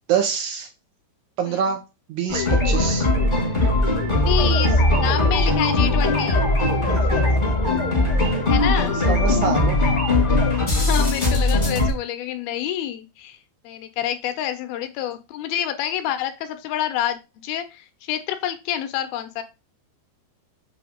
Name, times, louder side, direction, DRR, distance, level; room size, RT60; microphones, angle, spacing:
voice 1, 0.1-0.7 1.4-1.8 2.1-3.1 6.9-7.6 9.1-9.8, right 7 dB, 75° right, 5 dB, 1.9 m, -25 dB
sound 1, 2.3-11.9, left 2 dB, 25° left, 1.0 m, -19 dB
voice 2, 4.2-6.4 8.5-9.0 10.7-13.4 13.6-19.4, left 11 dB, 75° left, 8 dB, 2.4 m, -28 dB
7.6 x 3.3 x 5.0 m, 0.27 s
omnidirectional pair, 4.6 m